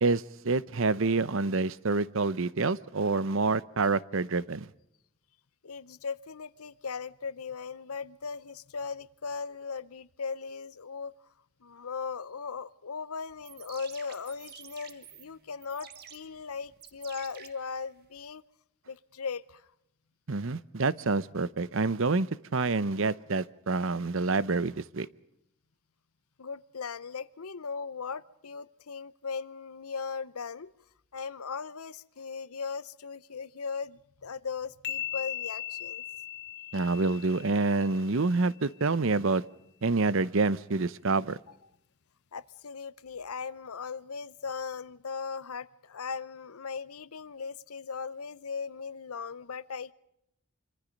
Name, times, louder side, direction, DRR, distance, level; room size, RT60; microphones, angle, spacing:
voice 1, 0.0-4.7 20.3-22.3 22.5-25.1 36.7-39.4 39.8-41.4, right 3 dB, 60° right, 0.8 m, -27 dB
voice 2, 5.6-11.1 11.6-18.4 18.9-19.7 26.4-30.7 31.1-36.0 42.3-49.9, left 5 dB, 80° left, 0.8 m, -38 dB
sound 1, 13.3-18.3, right 8 dB, 45° right, 1.7 m, -51 dB
sound 2, 34.8-38.4, left 12 dB, 50° left, 0.8 m, -38 dB
25.5 x 25.5 x 5.3 m
head